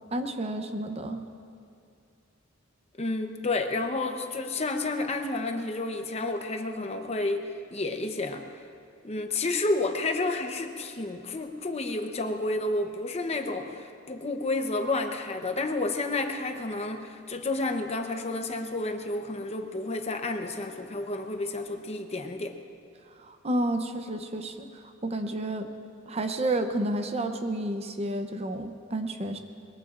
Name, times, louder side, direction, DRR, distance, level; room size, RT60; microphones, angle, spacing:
voice 1, 0.1-1.2 23.2-25.7 26.1-29.4, right 1 dB, 30° right, 6 dB, 0.7 m, -31 dB
voice 2, 3.0-8.4 9.0-22.6, left 2 dB, 30° left, 6 dB, 0.8 m, -30 dB
21.5 x 21.5 x 2.5 m, 2.4 s
head